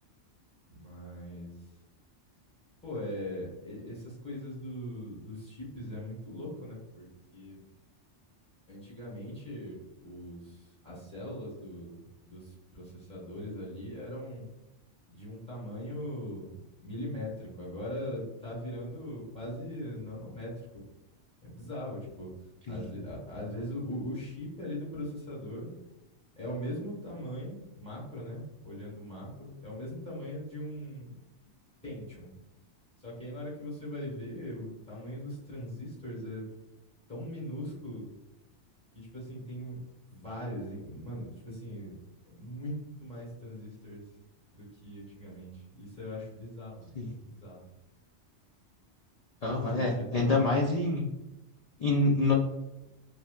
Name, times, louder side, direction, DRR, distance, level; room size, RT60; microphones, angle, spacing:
voice 1, 0.7-1.5 2.8-7.6 8.7-12.0 12.3-14.5 15.1-20.5 21.4-22.3 22.7-25.7 26.3-31.1 31.8-32.3 33.0-36.5 37.1-38.1 38.9-39.8 40.1-41.9 42.3-44.0 44.5-46.9 47.2-47.7 49.6-50.5, equal, 5° left, -6 dB, 1.1 m, -40 dB
voice 2, 49.4-51.0 51.8-52.3, left 2 dB, 60° left, -2 dB, 0.4 m, -26 dB
3.3 x 2.7 x 2.3 m, 0.98 s
omnidirectional pair, 1.2 m